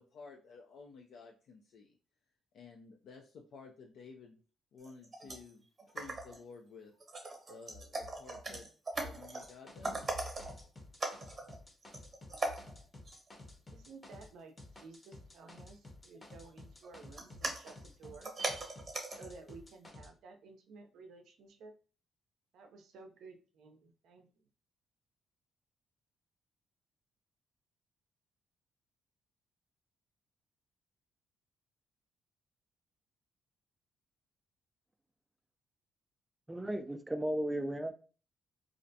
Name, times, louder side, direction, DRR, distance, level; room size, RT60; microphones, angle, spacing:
voice 1, 0.0-2.0 2.5-4.4 4.7-5.7 5.9-8.7 9.0-10.1, left 4 dB, 75° left, 0.4 m, -53 dB
sound 1, 4.8-5.5 5.8-6.5 6.9-9.5 9.8-10.6 11.0-11.6 11.8-12.8 13.1-13.3 16.2-16.3 16.8-19.4 19.7-19.8, right 2 dB, 35° right, 0.8 m, -40 dB
sound 2, 9.4-14.3 14.6-20.1, left 2 dB, 25° left, 0.7 m, -53 dB
voice 2, 13.7-18.3 19.0-21.7 22.5-24.2, right 4 dB, 80° right, 0.5 m, -54 dB
voice 3, 36.5-37.9, right 1 dB, 10° right, 0.3 m, -35 dB
2.4 x 2.1 x 2.6 m
cardioid pair, 90°, 0 cm